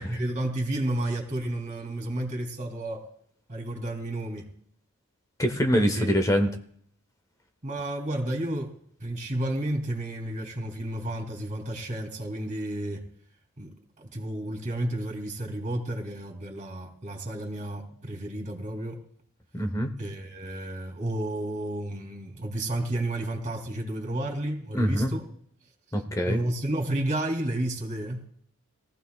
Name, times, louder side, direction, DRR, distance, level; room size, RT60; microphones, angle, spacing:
voice 1, 0.0-3.1 3.5-4.5 5.8-6.1 7.6-8.7 9.0-13.0 13.6-19.0 20.0-25.2 26.2-28.2, right 1 dB, 35° right, 2 dB, 3.0 m, -31 dB
voice 2, 5.4-6.5 19.5-19.9 24.7-25.2 25.9-26.4, equal, 15° left, 6 dB, 1.0 m, -24 dB
22.5 x 15.0 x 2.4 m, 0.63 s
head